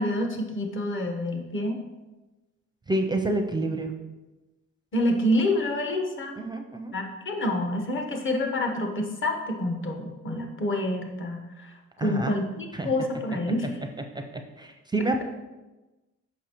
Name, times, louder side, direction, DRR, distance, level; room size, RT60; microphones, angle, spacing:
voice 1, 0.0-1.8 4.9-6.4 6.9-13.8, left 1 dB, 40° left, 3 dB, 1.1 m, -28 dB
voice 2, 2.9-3.9 6.4-6.9 12.0-12.4 12.7-12.9 14.6-15.2, right 2 dB, 15° right, 4 dB, 0.5 m, -28 dB
6.3 x 5.3 x 3.0 m, 1.1 s
cardioid pair, 90°, 30 cm